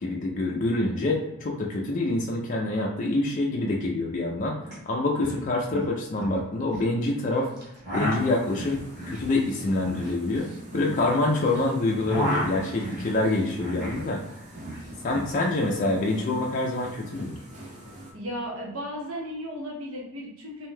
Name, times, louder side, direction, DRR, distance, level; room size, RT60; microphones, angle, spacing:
voice 1, 0.0-4.6 4.9-7.5 7.9-10.5 10.7-14.2 15.0-17.4, left 2 dB, 35° left, -1 dB, 0.4 m, -26 dB
sound 1, 4.7-4.8 5.0-5.4 5.7-6.9 7.6-11.5 11.8-14.1 14.3-15.3, equal, 55° right, 1.0 m, -33 dB
sound 2, 7.9-18.1, right 1 dB, 35° right, 0.7 m, -45 dB
voice 2, 18.1-20.7, equal, 70° right, -2 dB, 0.8 m, -35 dB
2.6 x 2.2 x 3.2 m, 0.87 s
head